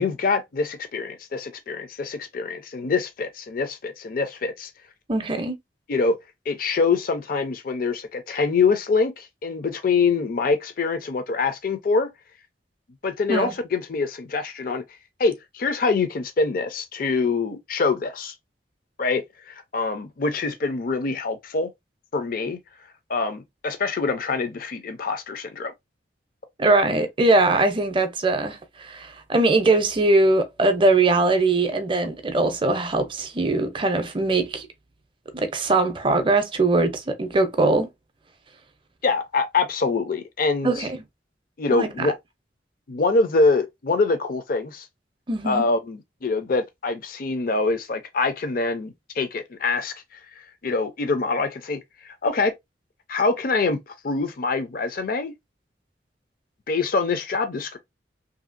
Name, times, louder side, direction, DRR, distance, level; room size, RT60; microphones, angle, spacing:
voice 1, 0.0-4.7 5.9-6.2 6.5-12.1 13.0-14.8 15.2-18.3 19.0-21.7 22.1-22.6 23.1-25.7 39.0-40.9 41.6-42.1 42.9-44.9 45.4-50.2 50.6-52.5 53.1-55.3 56.7-57.8, left 4 dB, 50° left, 0.5 m, -25 dB
voice 2, 5.1-5.5 13.3-13.6 26.6-34.7 35.3-37.9 40.6-41.0 41.7-42.1 45.3-45.7, right 2 dB, 30° right, 0.5 m, -21 dB
2.7 x 2.7 x 2.4 m
head